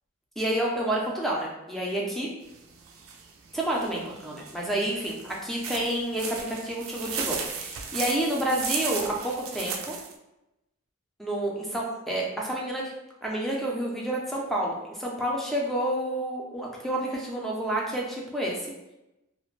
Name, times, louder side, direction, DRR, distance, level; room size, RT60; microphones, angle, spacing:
voice 1, 0.4-2.3 3.5-10.0 11.2-12.9 13.2-18.7, right 1 dB, ahead, -3 dB, 0.4 m, -29 dB
sound 1, 2.4-10.1, right 6 dB, 75° right, 0.4 m, -35 dB
2.4 x 2.1 x 3.0 m, 0.95 s
head